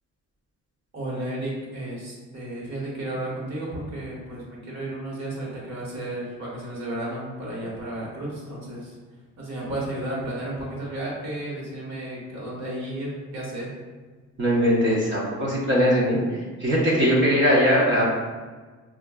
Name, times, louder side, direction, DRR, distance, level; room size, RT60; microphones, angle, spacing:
voice 1, 0.9-8.9 9.4-13.7, right 1 dB, 60° right, -4 dB, 1.4 m, -33 dB
voice 2, 14.4-18.0, equal, 40° right, -6 dB, 0.9 m, -21 dB
4.4 x 2.5 x 2.3 m, 1.4 s
cardioid pair, 90°, 30 cm